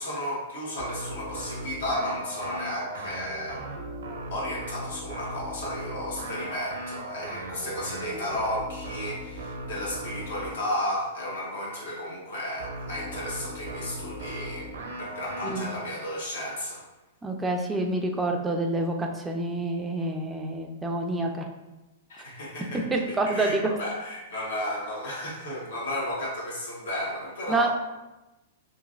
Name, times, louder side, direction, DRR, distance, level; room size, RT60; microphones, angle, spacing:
voice 1, 0.0-3.6 4.3-14.7 15.0-16.8 22.1-27.7, left 1 dB, 75° left, -4 dB, 1.2 m, -33 dB
sound 1, 0.8-10.6 12.6-15.8, right 1 dB, 85° right, 0.5 m, -38 dB
voice 2, 17.2-21.5 22.9-23.6 27.5-27.7, right 2 dB, 10° right, 2 dB, 0.3 m, -27 dB
2.9 x 2.5 x 2.5 m, 1.0 s
hypercardioid pair, 145°, 0 cm